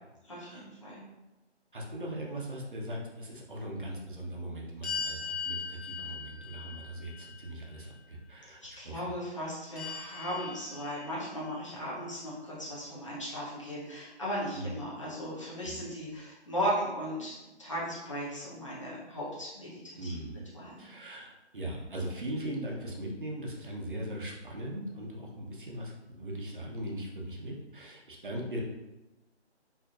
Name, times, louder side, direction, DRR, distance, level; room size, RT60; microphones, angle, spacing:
voice 1, 0.2-1.1 8.6-20.9, equal, 25° left, -7 dB, 0.8 m, -37 dB
voice 2, 1.7-8.6 8.8-9.0 14.5-14.7 15.6-15.8 20.0-20.4 20.8-28.6, right 1 dB, 50° right, -2 dB, 0.8 m, -39 dB
sound 1, 4.8-8.0 9.8-11.5, left 5 dB, 65° left, 1.0 m, -39 dB
4.7 x 2.9 x 2.4 m, 1.0 s
figure-of-eight pair, 175°, 34 cm